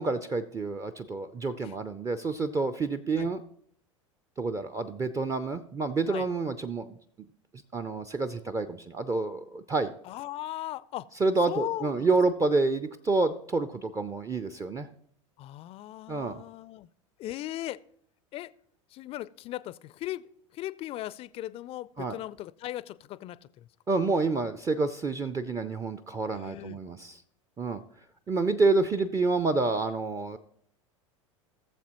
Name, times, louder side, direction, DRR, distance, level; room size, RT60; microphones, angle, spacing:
voice 1, 0.0-3.4 4.4-7.0 7.7-9.9 11.2-14.9 16.1-16.4 22.0-22.2 23.9-27.2 27.6-27.8 28.3-30.4, right 3 dB, 20° right, 11 dB, 0.5 m, -28 dB
voice 2, 10.0-11.1 11.5-12.1 15.4-16.9 17.2-17.8 18.3-18.5 18.9-20.2 20.5-23.7 26.3-26.8, left 14 dB, 35° left, 18 dB, 0.4 m, -38 dB
17.5 x 7.2 x 3.0 m, 0.65 s
figure-of-eight pair, 80°, 17 cm